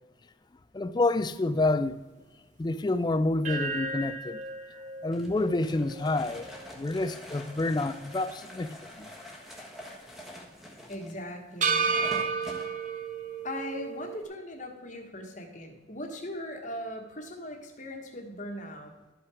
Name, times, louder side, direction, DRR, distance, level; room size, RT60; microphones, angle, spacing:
voice 1, 0.7-2.0 2.6-4.4 5.0-6.5 6.8-9.1, left 2 dB, 20° left, 0.3 m, -28 dB
sound 1, 3.4-7.7 8.1-8.2 11.6-14.2, right 4 dB, 40° right, 0.7 m, -33 dB
sound 2, 5.1-12.7, equal, ahead, 1.3 m, -46 dB
voice 2, 10.9-11.9 13.4-18.9, left 1 dB, 40° left, 1.3 m, -39 dB
12.0 x 5.7 x 4.8 m
head